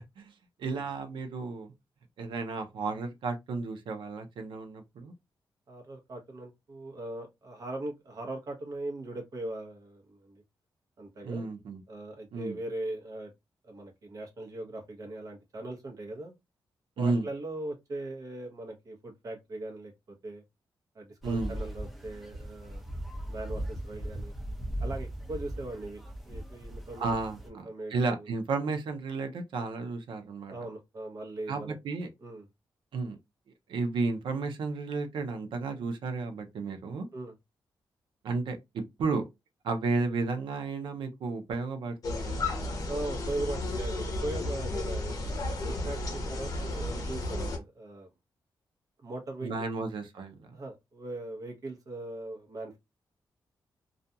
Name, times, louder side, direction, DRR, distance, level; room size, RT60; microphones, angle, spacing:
voice 1, 0.6-1.7 2.2-5.1 11.2-11.8 12.3-12.6 17.0-17.3 21.2-21.6 27.0-30.5 31.5-32.1 32.9-33.2 33.7-37.1 38.2-39.3 39.6-42.5 49.4-50.6, right 4 dB, 90° right, 0.6 m, -33 dB
voice 2, 5.7-10.4 11.0-11.5 11.9-13.3 13.6-16.3 17.0-20.4 20.9-22.8 23.3-24.3 24.8-26.0 26.3-27.1 27.4-28.3 30.5-31.8 32.2-32.4 37.1-37.3 42.9-45.2 45.8-48.1 49.0-49.7 50.5-52.8, right 2 dB, 45° right, 0.9 m, -39 dB
sound 1, 21.2-27.5, right 1 dB, ahead, 0.6 m, -38 dB
sound 2, 42.0-47.6, left 2 dB, 45° left, 0.7 m, -33 dB
2.5 x 2.2 x 2.6 m
wide cardioid pair, 170°, 8 cm